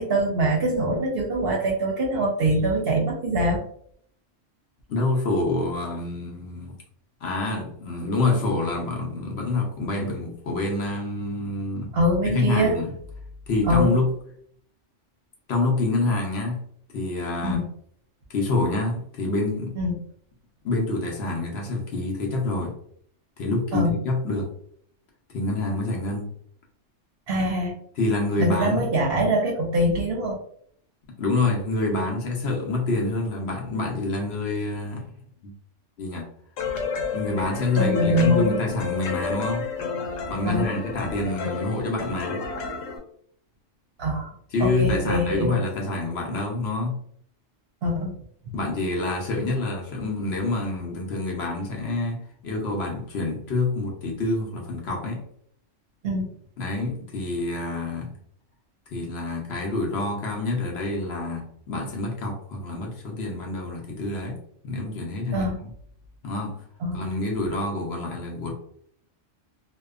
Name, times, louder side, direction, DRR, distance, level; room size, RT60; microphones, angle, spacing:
voice 1, 0.0-3.6 11.9-12.7 13.7-14.0 17.4-17.6 19.8-20.0 23.7-23.9 27.3-27.7 28.4-30.4 37.7-38.6 40.4-40.7 44.0-44.3 44.6-45.5 47.8-48.1 56.0-56.2 65.3-65.6 66.8-67.0, equal, 60° right, 0.7 m, -23 dB
voice 2, 4.9-6.8 7.2-11.9 12.2-12.9 13.5-14.1 15.5-16.6 16.9-17.6 18.3-19.8 20.6-22.8 23.4-24.5 25.3-26.3 28.0-28.9 31.2-35.1 35.4-35.5 36.0-36.3 37.1-39.7 40.3-42.4 44.5-47.0 48.5-55.2 56.6-58.1 58.9-64.4 64.6-65.7 66.2-66.6 66.9-68.5, left 2 dB, 65° left, 0.8 m, -27 dB
sound 1, 36.6-43.0, left 5 dB, 85° left, 1.0 m, -30 dB
2.8 x 2.2 x 2.3 m
omnidirectional pair, 1.3 m